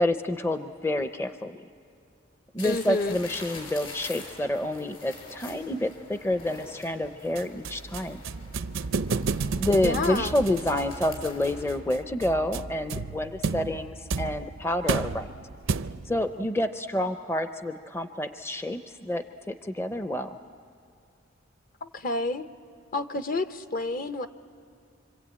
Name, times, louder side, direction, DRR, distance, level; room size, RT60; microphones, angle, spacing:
voice 1, 0.0-1.6 2.5-8.2 9.6-15.3 16.0-20.4, left 1 dB, 15° left, 8 dB, 0.6 m, -28 dB
sound 1, 2.6-11.7, left 2 dB, 70° left, 5.9 m, -44 dB
voice 2, 2.6-3.2 9.8-10.3 21.8-22.4 22.9-24.3, left 2 dB, 45° left, 10 dB, 0.8 m, -29 dB
sound 2, 7.4-16.2, right 4 dB, 75° right, 0.6 m, -32 dB
26.0 x 26.0 x 8.6 m, 2.4 s
head